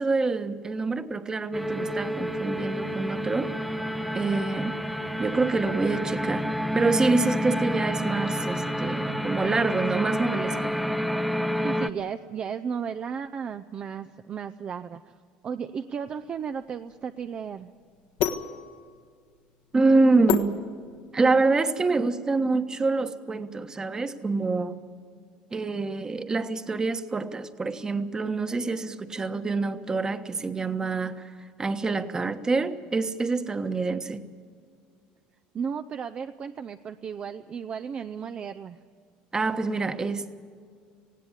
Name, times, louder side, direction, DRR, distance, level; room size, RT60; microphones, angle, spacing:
voice 1, 0.0-3.7 4.1-4.8 5.2-6.5 6.7-10.8 19.7-20.6 21.1-24.8 25.5-31.2 31.6-34.2 39.3-40.3, right 3 dB, 20° right, 9 dB, 1.3 m, -26 dB
sound 1, 1.5-11.9, equal, ahead, 0.8 m, -29 dB
voice 2, 11.6-15.1 15.4-17.7 35.5-38.8, right 7 dB, 35° right, 9 dB, 0.6 m, -34 dB
sound 2, 16.1-21.3, left 9 dB, 70° left, 1.5 m, -33 dB
19.0 x 16.0 x 9.6 m, 2.1 s
supercardioid pair, 105°, 3 cm